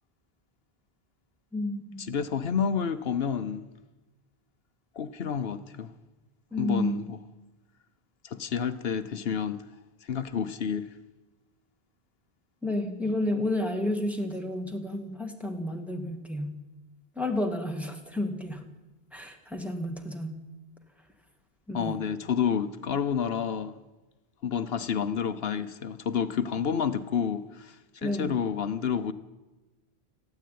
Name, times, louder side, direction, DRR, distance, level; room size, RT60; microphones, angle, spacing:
voice 1, 1.5-2.2 6.5-7.0 12.6-16.6 17.2-18.6 19.1-20.3 21.7-22.0 28.0-28.3, left 1 dB, ahead, 2.1 m, -31 dB
voice 2, 2.1-3.6 4.9-5.9 6.6-7.2 8.2-9.6 10.0-10.9 21.7-23.7 24.4-29.1, left 7 dB, 75° left, 1.0 m, -29 dB
19.5 x 14.5 x 9.3 m
omnidirectional pair, 1.0 m